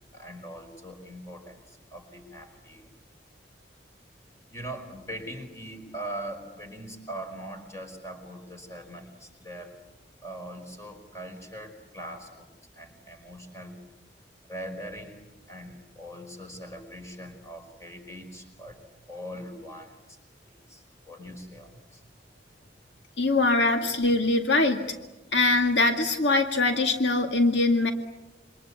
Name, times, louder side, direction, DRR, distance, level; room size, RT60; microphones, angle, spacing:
voice 1, 0.1-2.9 4.5-9.8 10.2-13.8 14.4-22.0, right 1 dB, 15° left, 5 dB, 5.0 m, -41 dB
voice 2, 23.2-24.8 25.3-27.9, left 2 dB, 80° left, 4 dB, 2.2 m, -22 dB
27.5 x 25.0 x 8.3 m, 1.1 s
head